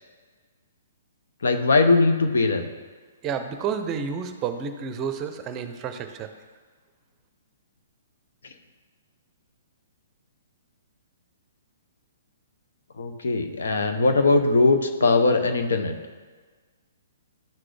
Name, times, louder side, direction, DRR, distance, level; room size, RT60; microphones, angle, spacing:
voice 1, 1.4-2.7 13.0-16.0, left 3 dB, 85° left, 7 dB, 0.8 m, -20 dB
voice 2, 3.2-6.3, right 6 dB, 25° right, 8 dB, 0.6 m, -30 dB
11.5 x 3.9 x 3.3 m, 1.4 s
hypercardioid pair, 145°, 0 cm